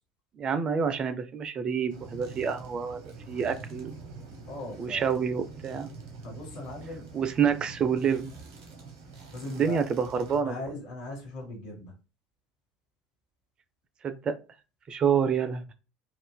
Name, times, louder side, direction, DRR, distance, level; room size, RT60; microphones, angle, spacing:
voice 1, 0.4-3.0 3.3-3.9 4.8-5.9 7.1-8.3 9.4-10.6 14.0-14.3 14.9-15.6, right 7 dB, 35° right, 10 dB, 0.4 m, -27 dB
sound 1, 1.9-10.4, right 3 dB, 60° right, 0.9 m, -45 dB
voice 2, 4.5-5.1 6.2-7.2 9.3-9.9 10.4-11.9, left 1 dB, 60° left, 0 dB, 1.5 m, -39 dB
3.6 x 2.5 x 2.2 m, 0.31 s
figure-of-eight pair, 65°, 3 cm